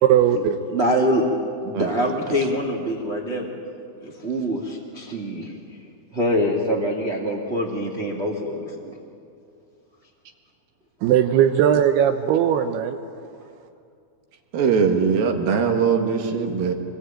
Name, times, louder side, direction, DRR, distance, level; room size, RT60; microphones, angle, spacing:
voice 1, 0.0-0.6 11.0-13.0, right 9 dB, 80° right, 7 dB, 2.8 m, -18 dB
voice 2, 0.7-3.5 4.0-5.5 6.1-8.9, equal, 20° right, -1 dB, 1.8 m, -24 dB
voice 3, 14.5-16.7, right 6 dB, 65° right, 4 dB, 3.3 m, -21 dB
25.5 x 20.5 x 8.9 m, 2.4 s
omnidirectional pair, 4.6 m